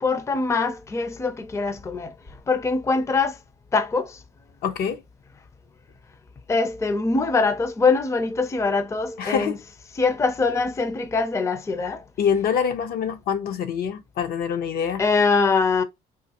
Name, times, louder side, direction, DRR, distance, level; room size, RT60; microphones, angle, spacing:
voice 1, 0.0-2.1 2.5-3.4 3.7-4.2 6.5-9.6 10.0-12.0 15.0-15.8, left 4 dB, 15° left, 0.5 m, -23 dB
voice 2, 4.6-5.0 9.2-9.6 12.2-15.0, left 7 dB, 65° left, 0.6 m, -25 dB
3.6 x 2.5 x 2.8 m
cardioid pair, 110°, 17 cm